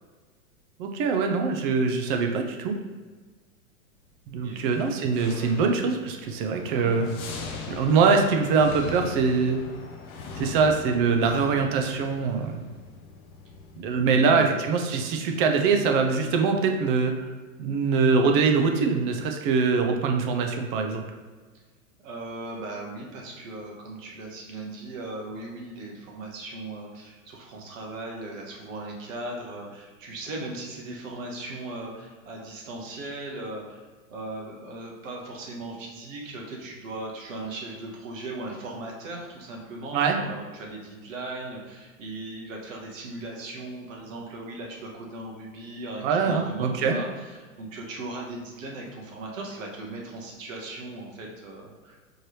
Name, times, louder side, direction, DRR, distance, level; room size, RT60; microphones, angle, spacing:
voice 1, 0.8-2.8 4.3-7.1 7.7-9.6 10.4-12.6 13.7-17.2 17.6-21.0 39.9-40.2 46.0-47.0, right 5 dB, 40° right, 4 dB, 0.5 m, -23 dB
sound 1, 4.5-14.2, left 3 dB, 25° left, 0.4 m, -40 dB
voice 2, 6.7-7.0 14.0-14.5 22.0-33.8 34.1-52.0, right 2 dB, 65° right, -1 dB, 1.3 m, -38 dB
4.5 x 3.2 x 3.1 m, 1.4 s
hypercardioid pair, 120°, 42 cm